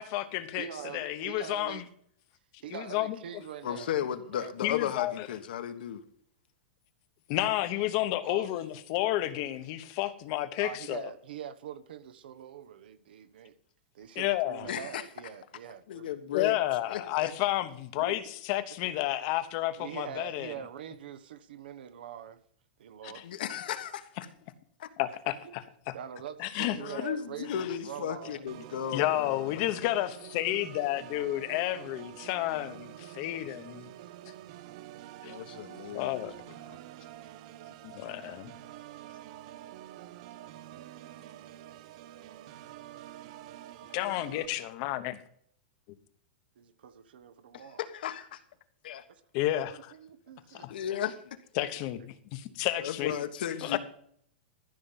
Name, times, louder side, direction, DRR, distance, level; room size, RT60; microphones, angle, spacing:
voice 1, 0.0-0.7 0.9-1.8 2.7-3.2 4.6-5.3 7.3-11.1 14.1-14.7 16.3-18.2 18.5-20.5 23.0-23.2 25.0-25.9 26.4-27.1 28.9-33.9 35.2-35.3 35.9-36.3 37.8-38.5 43.9-45.2 49.3-49.9 50.5-50.7 51.6-52.0 52.3-53.1 53.6-53.8, left 15 dB, 35° left, 1.0 m, -31 dB
voice 2, 0.6-1.8 2.6-4.0 4.3-4.8 8.1-8.5 10.6-13.5 13.9-16.1 18.0-18.4 18.8-18.9 19.8-22.4 22.8-23.3 25.4-25.5 25.9-28.4 29.6-29.7 46.6-47.8 49.1-49.2 49.7-50.7 52.0-52.1 52.8-53.2, right 9 dB, 75° right, 1.1 m, -44 dB
voice 3, 3.6-6.0 14.6-15.0 15.9-16.5 16.9-17.3 23.2-24.1 24.8-24.9 26.8-29.7 35.2-36.8 47.5-48.4 48.8-49.0 50.7-51.4 52.8-53.8, left 10 dB, 70° left, 1.4 m, -35 dB
Organ, 28.5-44.5, right 13 dB, 40° right, 0.6 m, -47 dB
14.0 x 6.7 x 5.8 m
supercardioid pair, 170°, 5 cm